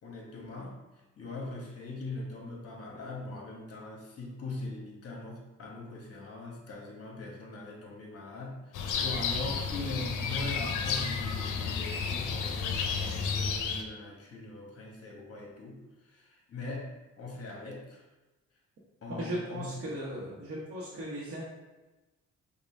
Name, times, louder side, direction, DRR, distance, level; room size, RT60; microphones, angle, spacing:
voice 1, 0.0-0.8 1.2-15.8 16.0-16.9 17.2-18.0 19.0-19.7, left 2 dB, 50° left, -1 dB, 1.3 m, -41 dB
sound 1, 8.7-13.8, left 5 dB, 80° left, 0.6 m, -32 dB
voice 2, 19.1-21.4, right 1 dB, 50° right, -7 dB, 1.0 m, -37 dB
5.3 x 2.3 x 3.3 m, 1.1 s
cardioid pair, 90°, 30 cm